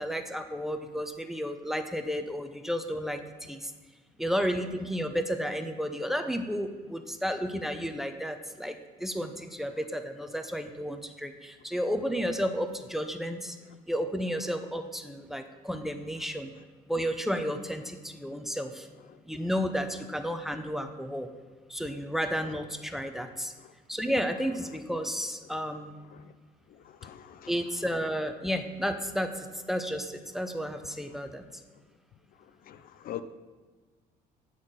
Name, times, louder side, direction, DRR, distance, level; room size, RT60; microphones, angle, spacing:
voice 1, 0.0-3.7 4.2-13.6 13.9-16.5 16.9-18.9 19.3-21.3 21.7-23.5 23.9-26.0 27.5-31.4, equal, ahead, 8 dB, 0.6 m, -32 dB
voice 2, 26.8-27.5 32.7-33.2, left 12 dB, 60° left, 12 dB, 0.5 m, -43 dB
9.1 x 4.1 x 6.4 m, 1.4 s
cardioid pair, 110°, 17 cm